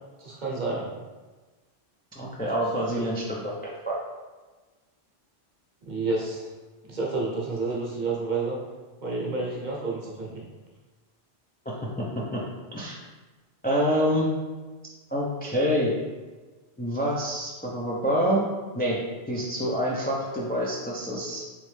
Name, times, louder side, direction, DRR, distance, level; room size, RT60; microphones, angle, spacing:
voice 1, 0.2-0.9 2.9-3.0 5.8-6.5 6.8-8.6 9.0-10.4, right 3 dB, 45° right, -4 dB, 0.9 m, -30 dB
voice 2, 2.1-4.0 11.7-12.1 12.3-12.4 12.7-13.0 13.6-14.3 15.1-15.9 16.8-18.4 18.7-19.0 19.3-21.5, equal, 15° left, -4 dB, 0.3 m, -27 dB
3.5 x 3.1 x 3.2 m, 1.3 s
omnidirectional pair, 1.1 m